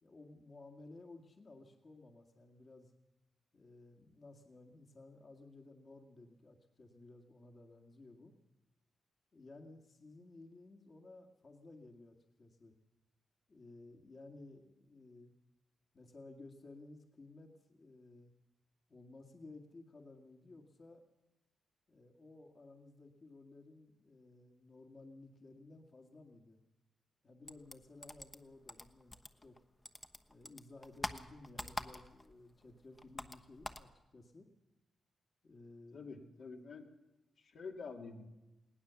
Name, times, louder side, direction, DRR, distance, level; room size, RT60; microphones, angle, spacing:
voice 1, 0.0-2.9 3.5-8.3 9.3-12.7 13.5-15.3 15.9-18.3 18.9-21.0 21.9-26.6 27.2-29.6 30.3-34.5 35.4-36.4, left 2 dB, 40° left, 2 dB, 2.1 m, -56 dB
sound 1, 27.5-29.6 29.9-32.3 32.6-33.9, left 1 dB, 15° left, 1.1 m, -45 dB
voice 2, 35.9-36.8 37.4-38.2, left 4 dB, 70° left, 1 dB, 2.6 m, -47 dB
20.0 x 18.5 x 7.1 m, 1.0 s
cardioid pair, 95°, 0 cm